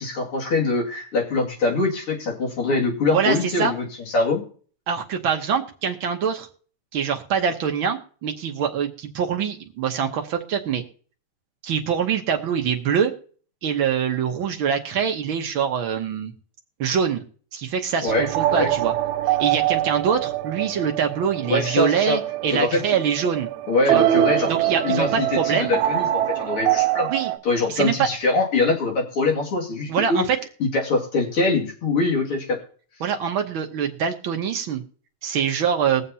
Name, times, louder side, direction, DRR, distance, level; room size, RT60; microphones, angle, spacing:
voice 1, 0.0-3.9 4.1-4.4 18.0-18.7 21.4-22.2 22.5-23.0 23.7-24.5 24.8-27.1 27.4-30.3 30.6-32.6, left 3 dB, 50° left, -1 dB, 3.0 m, -23 dB
voice 2, 3.1-3.7 4.9-6.5 6.9-10.8 11.6-13.1 13.6-16.3 16.8-17.2 17.5-18.9 19.3-23.5 23.9-24.0 24.5-25.8 27.1-27.3 27.7-28.1 29.9-30.4 33.0-34.8 35.2-36.0, right 7 dB, 60° right, 4 dB, 1.4 m, -24 dB
sound 1, 18.1-27.4, right 14 dB, 80° right, 1.9 m, -24 dB
21.5 x 7.3 x 2.8 m, 0.43 s
omnidirectional pair, 3.3 m